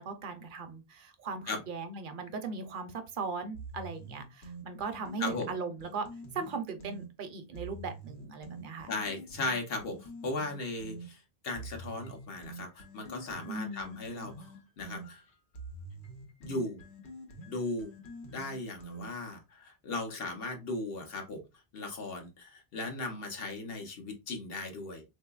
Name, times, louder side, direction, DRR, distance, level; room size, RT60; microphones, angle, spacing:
voice 1, 0.0-6.1 6.3-8.9 13.5-14.0, right 4 dB, 60° right, 0.7 m, -38 dB
sound 1, 3.5-7.1 7.5-11.1 11.5-19.3, right 2 dB, 85° left, 1.2 m, -46 dB
voice 2, 5.2-5.5 8.9-15.2 16.4-16.8 17.5-17.9 18.3-21.4 21.7-25.0, left 2 dB, 65° left, 1.0 m, -37 dB
3.7 x 2.7 x 2.3 m
omnidirectional pair, 1.1 m